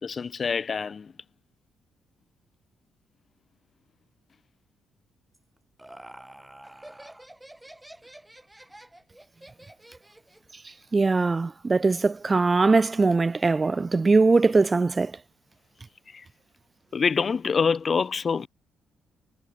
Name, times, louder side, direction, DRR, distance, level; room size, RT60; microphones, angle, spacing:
voice 1, 0.0-1.1 16.1-16.3 16.9-18.5, left 5 dB, 40° left, 0.7 m, -26 dB
Laughter, 5.3-10.5, right 1 dB, 10° right, 5.6 m, -48 dB
voice 2, 10.9-15.1, right 3 dB, 25° right, 1.0 m, -21 dB
cardioid pair, 90°, 0 cm